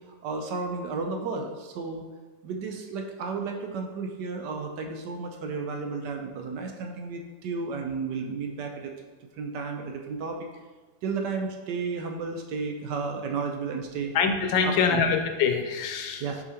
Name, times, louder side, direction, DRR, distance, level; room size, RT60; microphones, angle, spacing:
voice 1, 0.1-2.0 2.4-8.9 9.4-10.4 11.0-14.1 14.6-15.0 16.2-16.4, right 4 dB, 70° right, 4 dB, 1.2 m, -33 dB
voice 2, 14.1-16.2, left 6 dB, 80° left, 6 dB, 1.4 m, -24 dB
6.7 x 4.9 x 2.9 m, 1.3 s
omnidirectional pair, 2.1 m